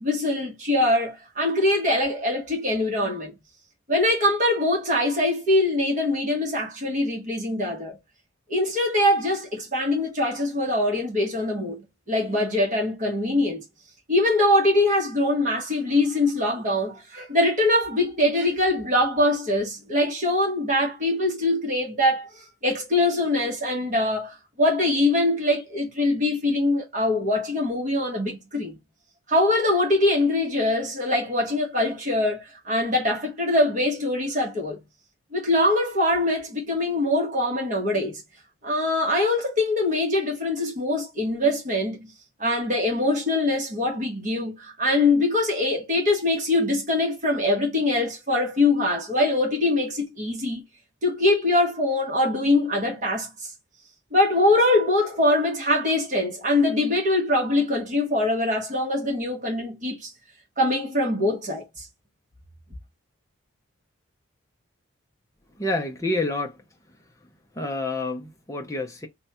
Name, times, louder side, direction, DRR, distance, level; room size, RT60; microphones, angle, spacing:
voice 1, 0.0-3.3 3.9-8.0 8.5-13.6 14.1-28.8 29.3-34.8 35.3-38.2 38.6-42.1 42.4-50.6 51.0-53.3 54.1-60.1 60.6-61.8, left 1 dB, 40° right, 1.2 m, -23 dB
voice 2, 65.6-66.6 67.5-69.1, left 2 dB, 15° left, 0.6 m, -28 dB
3.3 x 2.3 x 4.2 m
head